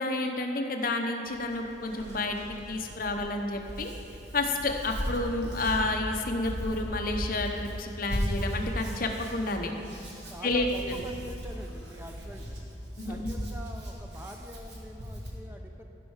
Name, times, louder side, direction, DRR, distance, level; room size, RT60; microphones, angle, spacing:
voice 1, 0.0-2.4 2.7-3.9 4.3-9.7 10.4-11.0 13.0-13.3, left 2 dB, 50° left, 3 dB, 0.8 m, -30 dB
Hands, 1.2-15.3, equal, 65° right, 1.6 m, -37 dB
voice 2, 10.3-12.6 13.0-15.8, equal, 10° right, 3 dB, 0.5 m, -45 dB
14.5 x 5.4 x 4.8 m, 2.8 s
head